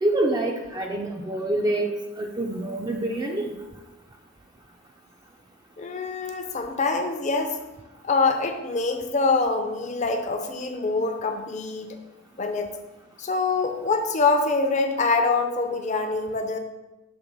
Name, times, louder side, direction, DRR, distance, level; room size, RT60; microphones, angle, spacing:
voice 1, 0.0-3.5, right 1 dB, 20° right, 1 dB, 0.4 m, -26 dB
voice 2, 5.8-7.6 8.0-12.0 12.4-12.7 13.2-16.6, left 3 dB, 35° left, 5 dB, 0.6 m, -25 dB
6.2 x 3.3 x 5.3 m, 1.0 s
head